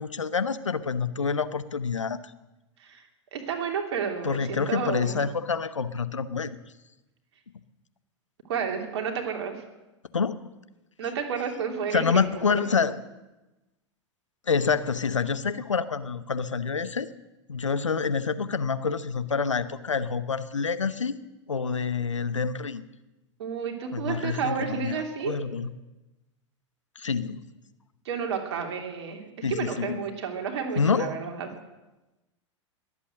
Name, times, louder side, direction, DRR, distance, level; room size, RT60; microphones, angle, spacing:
voice 1, 0.0-2.2 4.2-6.6 10.1-10.4 11.9-13.0 14.5-17.1 17.5-21.2 21.5-22.9 23.9-25.0 25.2-25.7 27.0-27.4 29.4-30.0 30.8-31.1, left 5 dB, 85° left, 14 dB, 0.8 m, -27 dB
voice 2, 3.3-5.2 8.5-9.6 11.0-12.1 12.6-12.7 23.4-25.4 28.0-31.5, right 6 dB, 60° right, 3 dB, 3.0 m, -31 dB
21.5 x 8.4 x 7.5 m, 1.0 s
figure-of-eight pair, 95°, 15 cm